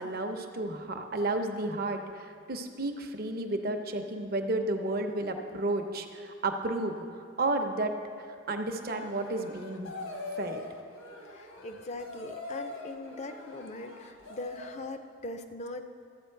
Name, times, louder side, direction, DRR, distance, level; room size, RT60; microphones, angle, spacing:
voice 1, 0.0-6.9 7.4-8.0 8.5-9.9 10.4-10.6, right 2 dB, 45° right, 5 dB, 0.7 m, -32 dB
sound 1, 8.7-14.9, left 3 dB, 75° left, 1.3 m, -43 dB
voice 2, 11.3-15.8, left 2 dB, 30° left, 8 dB, 0.5 m, -41 dB
13.0 x 8.0 x 4.5 m, 2.4 s
head